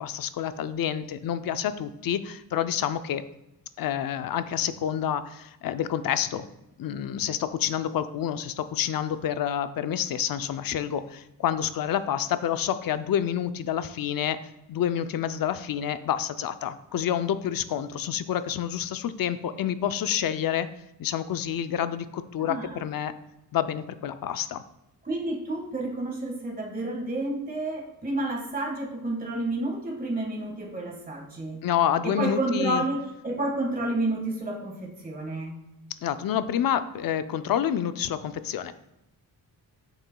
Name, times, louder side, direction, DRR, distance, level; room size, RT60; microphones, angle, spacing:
voice 1, 0.0-3.2 3.8-6.5 6.8-14.4 14.7-20.7 21.0-23.1 23.5-24.6 31.6-32.8 36.0-38.7, left 10 dB, 65° left, 12 dB, 0.5 m, -28 dB
voice 2, 22.4-22.8 25.0-31.6 32.0-35.6, right 2 dB, 25° right, 0 dB, 1.7 m, -30 dB
9.0 x 7.1 x 2.3 m, 0.88 s
wide cardioid pair, 125°, 37 cm